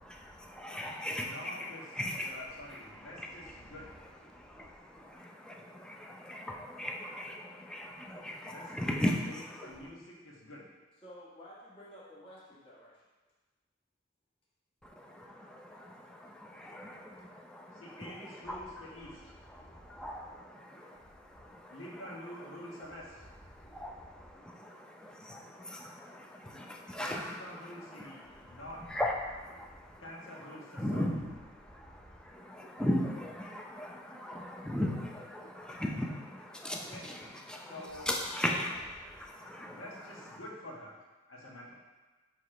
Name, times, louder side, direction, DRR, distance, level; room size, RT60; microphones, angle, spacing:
voice 1, 0.0-9.9 14.8-23.1 23.4-40.4, left 1 dB, 5° left, 0 dB, 0.6 m, -39 dB
voice 2, 1.2-1.8 2.2-3.9 8.5-8.9 9.2-10.6 17.7-19.3 21.7-23.3 27.1-28.8 30.0-31.0 36.8-37.0 37.6-38.1 39.6-40.9 41.3-41.7, left 1 dB, 85° left, -4 dB, 1.4 m, -47 dB
voice 3, 11.0-13.1 19.8-20.2, equal, 30° left, -7 dB, 1.4 m, -52 dB
6.1 x 3.2 x 5.0 m, 1.2 s
head